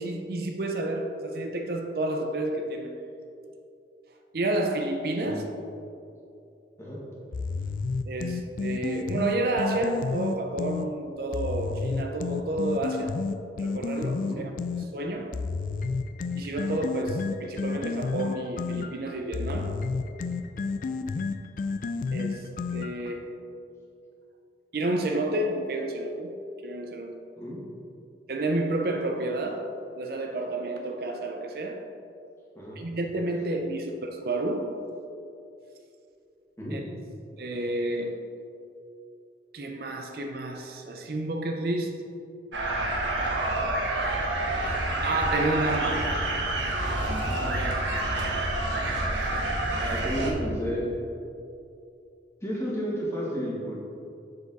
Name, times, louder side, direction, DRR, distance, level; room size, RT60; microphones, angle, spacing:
voice 1, 0.0-2.9 4.3-5.5 8.1-13.2 13.6-14.5 14.8-15.5 16.4-19.9 22.1-23.4 24.7-26.3 26.6-27.2 28.3-31.9 32.8-34.9 36.7-36.8 37.4-38.3 39.5-42.1 43.1-44.3 45.0-46.2 47.4-47.9, right 2 dB, 55° right, 0.5 m, -30 dB
sound 1, 7.3-10.9 11.3-14.9 15.3-23.1, left 4 dB, 50° left, 0.3 m, -31 dB
sound 2, 42.5-50.3, right 1 dB, 90° right, 1.1 m, -28 dB
voice 2, 49.7-50.9 52.4-53.8, equal, 15° left, 1.6 m, -32 dB
7.1 x 6.6 x 4.0 m
head